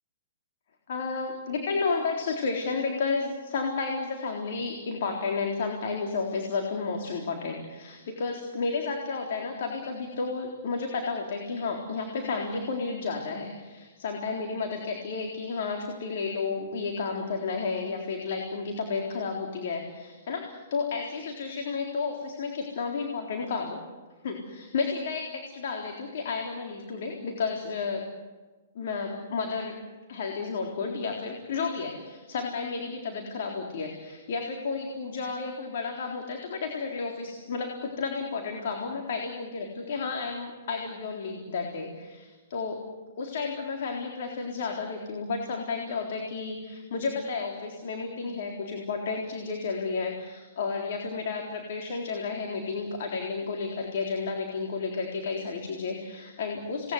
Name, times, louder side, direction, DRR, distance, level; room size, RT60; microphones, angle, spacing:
voice 1, 0.9-23.8 24.2-28.0 28.7-29.7 30.1-42.8 43.2-56.9, left 4 dB, 60° left, 1 dB, 4.0 m, -32 dB
28.5 x 20.0 x 8.2 m, 1.3 s
hypercardioid pair, 135°, 0 cm